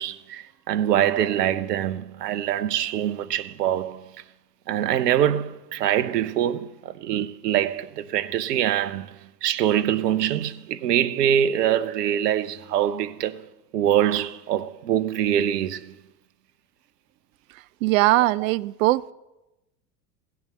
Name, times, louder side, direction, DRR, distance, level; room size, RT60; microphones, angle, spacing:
voice 1, 0.0-4.1 4.7-13.4 13.7-15.9, right 10 dB, 70° right, 0.8 m, -24 dB
voice 2, 17.8-19.1, right 18 dB, 55° right, 0.5 m, -20 dB
15.5 x 6.3 x 7.1 m
figure-of-eight pair, 80°, 49 cm